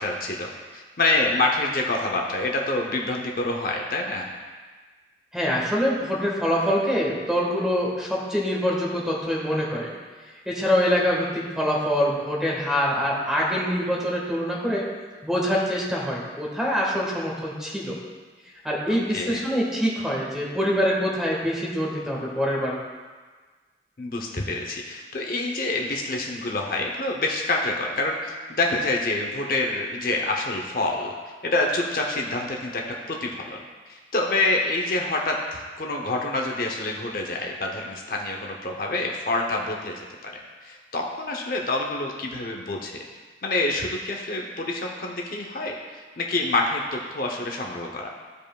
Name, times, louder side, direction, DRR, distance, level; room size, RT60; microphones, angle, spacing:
voice 1, 0.0-4.3 18.9-19.5 24.0-31.1 31.4-33.6 33.9-43.0 43.4-48.1, left 2 dB, 50° left, 0 dB, 0.7 m, -27 dB
voice 2, 5.3-9.9 10.4-14.8 15.2-17.9 18.6-22.8, equal, 5° right, -4 dB, 1.5 m, -25 dB
14.5 x 5.1 x 2.3 m, 1.4 s
head